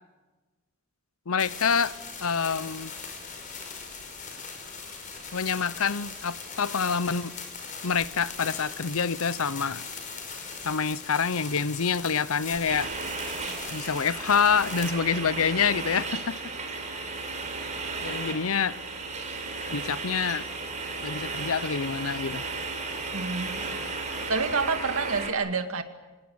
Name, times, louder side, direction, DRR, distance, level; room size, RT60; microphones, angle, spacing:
voice 1, 1.3-2.9 5.3-7.3 7.8-9.8 10.6-12.9 13.7-16.4 16.9-17.0 18.0-18.8 19.7-20.5 21.0-22.4, left 6 dB, 75° left, 0.8 m, -27 dB
sound 1, 1.4-14.9, left 5 dB, 35° left, 5.4 m, -40 dB
sound 2, 12.7-25.3, right 3 dB, 35° right, 4.1 m, -34 dB
voice 2, 23.1-23.7 24.3-25.8, right 4 dB, 75° right, 2.2 m, -28 dB
26.0 x 20.0 x 8.7 m
head